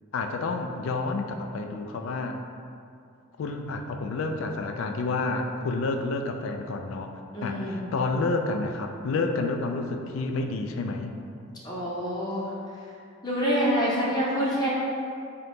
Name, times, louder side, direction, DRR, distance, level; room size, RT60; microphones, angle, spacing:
voice 1, 0.1-2.4 3.4-7.1 7.4-11.2, left 3 dB, 75° left, 5 dB, 0.3 m, -29 dB
voice 2, 7.3-7.9 11.6-12.5 13.2-14.7, equal, 20° left, -6 dB, 0.6 m, -26 dB
3.8 x 2.8 x 3.5 m, 2.4 s
head